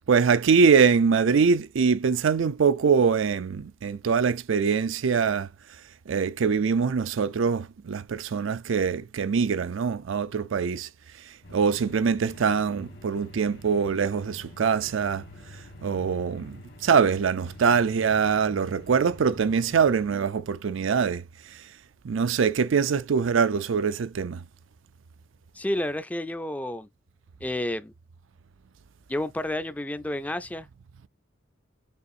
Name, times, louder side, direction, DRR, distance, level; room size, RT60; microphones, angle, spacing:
voice 1, 0.1-5.5 6.1-10.9 11.5-15.2 15.8-21.2 22.0-24.4, right 6 dB, 90° right, 0.4 m, -23 dB
sound 1, 11.4-20.1, left 1 dB, 65° left, 1.5 m, -47 dB
voice 2, 25.6-26.9 27.4-27.9 29.1-30.7, left 1 dB, 10° left, 0.3 m, -30 dB
6.7 x 2.5 x 2.6 m
head